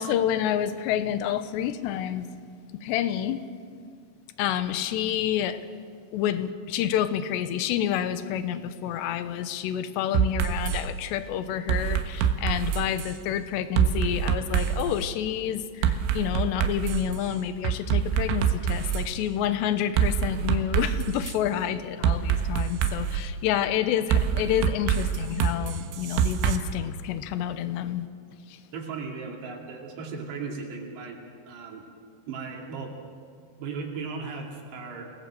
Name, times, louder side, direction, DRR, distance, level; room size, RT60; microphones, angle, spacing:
voice 1, 0.0-2.3 2.8-3.4 4.4-5.6 6.1-28.1 28.5-28.6, left 10 dB, 75° left, 12 dB, 2.8 m, -28 dB
sound 1, 10.1-10.8 11.7-13.1 13.8-14.9 15.8-17.1 17.6-19.1 20.0-21.4 22.0-23.2 24.1-26.6, right 8 dB, 80° right, 3.8 m, -25 dB
voice 2, 28.7-31.2 31.5-31.8 32.3-33.0 33.6-35.1, right 4 dB, 60° right, 1 dB, 4.5 m, -36 dB
28.5 x 19.0 x 7.8 m, 2.1 s
omnidirectional pair, 5.7 m